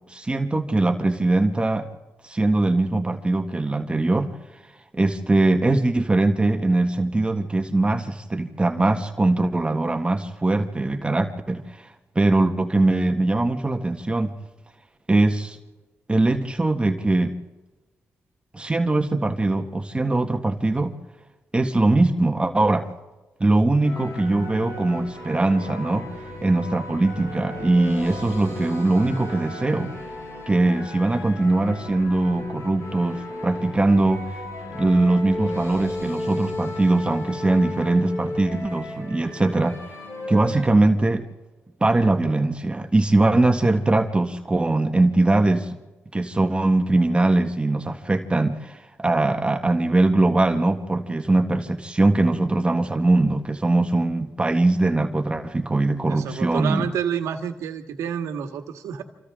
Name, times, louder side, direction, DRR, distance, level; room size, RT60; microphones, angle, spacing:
voice 1, 0.1-1.9 2.2-4.3 4.9-11.9 12.2-14.3 15.1-15.6 16.1-17.4 18.5-21.0 21.5-22.9 23.4-26.1 26.4-29.9 30.5-34.3 34.7-39.8 40.3-41.2 41.8-45.8 46.1-56.8, right 2 dB, 20° right, 5 dB, 1.6 m, -21 dB
sound 1, 23.8-40.7, left 2 dB, 75° left, 7.4 m, -34 dB
voice 2, 55.9-59.0, right 8 dB, 90° right, 6 dB, 1.8 m, -29 dB
28.0 x 26.5 x 3.8 m, 1.2 s
cardioid pair, 65°, 5 cm